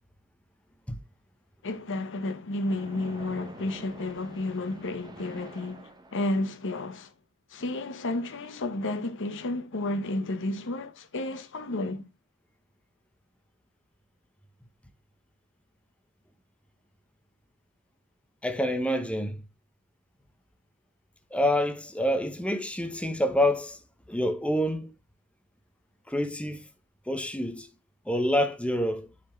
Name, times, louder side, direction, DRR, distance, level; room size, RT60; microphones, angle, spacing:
voice 1, 1.6-7.1 7.5-12.1, left 2 dB, 55° left, 1.0 m, -32 dB
Splash splatter, 2.6-6.6, right 2 dB, 20° right, 1.0 m, -47 dB
voice 2, 18.4-19.4 21.3-23.8 24.1-24.9 26.1-26.6 27.1-27.7 28.1-29.1, left 1 dB, 5° left, 0.8 m, -27 dB
10.0 x 4.3 x 3.2 m
head